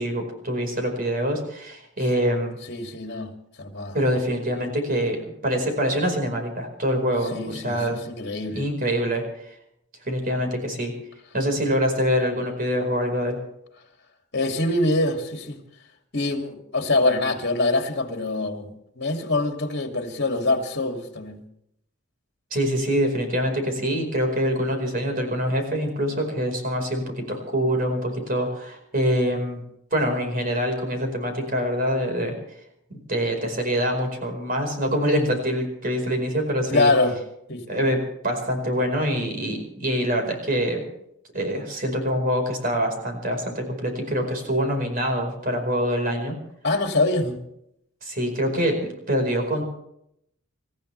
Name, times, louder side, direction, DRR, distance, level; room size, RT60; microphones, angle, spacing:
voice 1, 0.0-2.6 3.9-8.0 8.5-9.5 10.0-10.9 11.3-13.4 22.5-29.6 29.9-32.3 32.9-36.9 37.7-40.8 41.3-46.3 47.2-47.3 48.0-49.6, equal, 40° right, 4 dB, 4.9 m, -25 dB
voice 2, 2.7-3.3 3.6-4.0 7.3-8.6 14.3-15.6 16.1-21.4 36.7-37.2 37.5-37.8 46.6-47.3, left 2 dB, 50° left, 3 dB, 2.6 m, -24 dB
28.0 x 14.5 x 3.4 m, 0.76 s
head